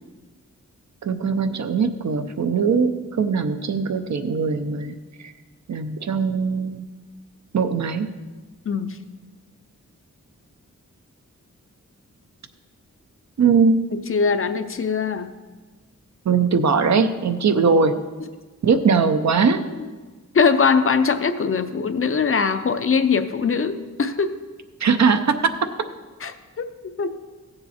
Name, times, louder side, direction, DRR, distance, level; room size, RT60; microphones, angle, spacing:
voice 1, 1.0-4.9 5.2-5.3 5.7-6.8 7.5-8.1 13.4-13.8 16.3-17.9 18.6-19.6 24.8-25.3, right 5 dB, 65° right, 8 dB, 0.7 m, -20 dB
voice 2, 8.7-9.0 14.1-15.4 19.7-19.9 20.3-24.4 26.2-27.3, left 5 dB, 45° left, 9 dB, 0.6 m, -22 dB
16.0 x 6.8 x 4.2 m, 1.3 s
wide cardioid pair, 165°, 30 cm